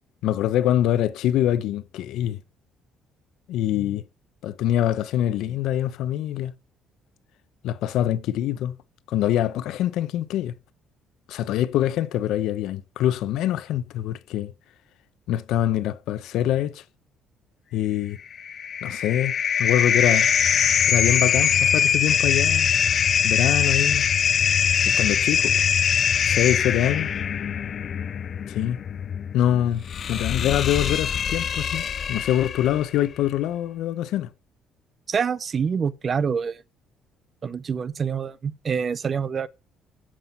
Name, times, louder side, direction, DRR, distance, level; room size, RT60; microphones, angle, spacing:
voice 1, 0.2-2.4 3.5-4.0 4.4-6.5 7.6-8.7 9.1-10.5 11.3-14.5 15.3-16.8 17.7-18.2 18.8-20.3 20.9-22.7 23.2-24.0 24.8-25.6 26.3-27.1 28.5-28.8 29.3-34.3, left 12 dB, 70° left, 0.8 m, -24 dB
sound 1, 18.3-32.8, left 8 dB, 35° left, 0.5 m, -23 dB
voice 2, 35.1-36.6 37.4-39.5, right 6 dB, 30° right, 0.5 m, -26 dB
9.8 x 7.7 x 5.4 m
cardioid pair, 170°, 0 cm